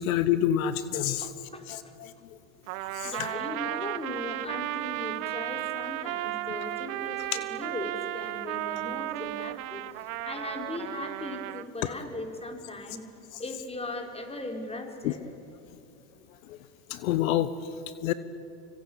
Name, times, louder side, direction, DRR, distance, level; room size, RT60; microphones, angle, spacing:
voice 1, 0.0-1.3 1.7-2.1 2.9-3.3 15.0-15.1 16.5-16.6 16.9-17.5 18.0-18.1, left 11 dB, 80° left, 14 dB, 1.2 m, -27 dB
voice 2, 1.2-1.9 3.0-13.0 13.4-15.2, left 2 dB, 15° left, 3 dB, 4.5 m, -38 dB
Trumpet, 2.7-11.7, right 16 dB, 80° right, 1.1 m, -34 dB
25.5 x 24.5 x 8.7 m, 2.6 s
supercardioid pair, 95°, 41 cm